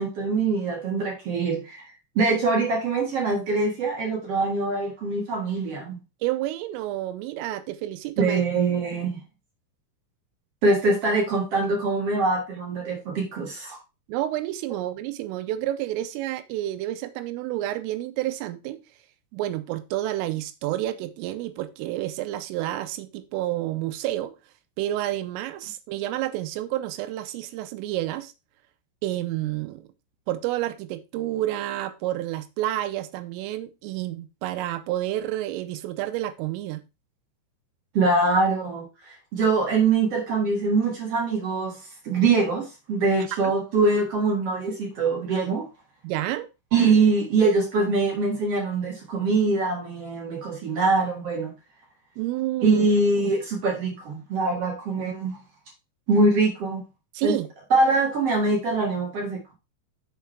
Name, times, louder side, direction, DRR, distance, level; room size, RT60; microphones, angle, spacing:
voice 1, 0.0-1.8 2.1-6.0 8.2-9.2 10.6-13.8 37.9-41.8 42.0-45.7 46.7-51.5 52.6-55.4 56.1-56.8 57.2-57.3 57.7-59.5, right 3 dB, 70° right, 1.4 m, -23 dB
voice 2, 6.2-8.4 14.1-18.8 19.3-24.4 24.8-28.3 29.0-29.9 30.3-36.8 43.4-43.5 46.0-46.5 52.2-52.9 57.1-57.5, right 14 dB, 85° right, 3.3 m, -29 dB
7.3 x 5.8 x 4.4 m
omnidirectional pair, 5.9 m